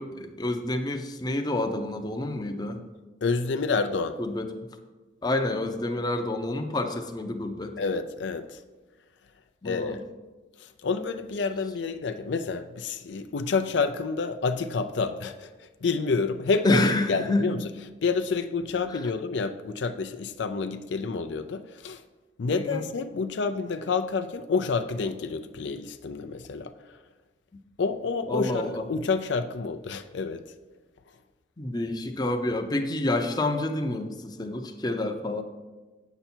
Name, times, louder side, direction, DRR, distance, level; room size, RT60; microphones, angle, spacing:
voice 1, 0.0-2.8 4.2-4.5 5.2-7.8 9.6-10.0 16.6-17.4 22.5-22.8 28.3-28.8 31.6-35.4, left 2 dB, 20° left, 5 dB, 0.6 m, -28 dB
voice 2, 3.2-4.2 7.8-8.6 9.6-10.0 10.6-17.7 18.0-22.0 22.4-26.7 27.8-30.4, left 4 dB, 75° left, 9 dB, 0.5 m, -29 dB
8.8 x 7.0 x 4.4 m, 1.2 s
head